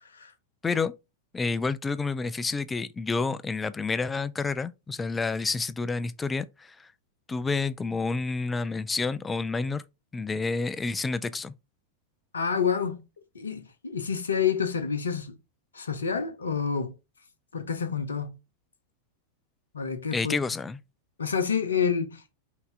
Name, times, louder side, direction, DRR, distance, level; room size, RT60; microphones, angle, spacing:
voice 1, 1.3-6.9 7.3-9.8 10.1-11.5 20.1-20.8, left 4 dB, 15° left, 0.4 m, -29 dB
voice 2, 12.3-13.0 13.3-15.4 15.7-16.9 17.5-18.4 19.7-20.4 21.2-22.2, left 6 dB, 70° left, 0.8 m, -28 dB
5.6 x 2.8 x 3.4 m
figure-of-eight pair, 90°, 0 cm